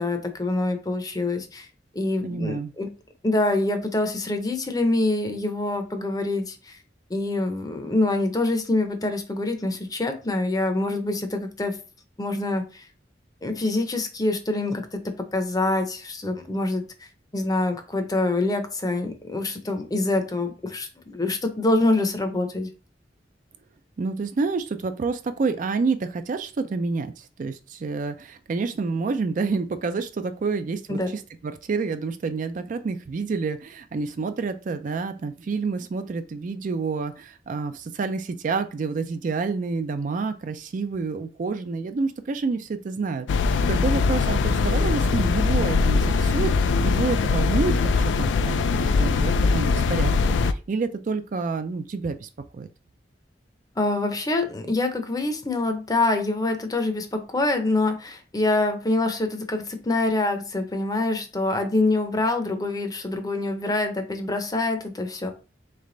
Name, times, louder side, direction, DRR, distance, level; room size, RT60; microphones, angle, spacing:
voice 1, 0.0-1.7 1.9-2.9 3.2-6.8 7.1-11.8 12.2-12.9 13.4-15.0 15.3-22.7 30.9-31.1 53.8-65.3, left 2 dB, 20° left, 6 dB, 0.6 m, -25 dB
voice 2, 2.2-2.7 24.0-43.3 43.7-50.1 50.4-52.7, right 4 dB, 45° right, 9 dB, 0.3 m, -28 dB
sound 1, 43.3-50.5, left 4 dB, 90° left, 0.3 m, -21 dB
3.3 x 3.2 x 3.8 m, 0.33 s
head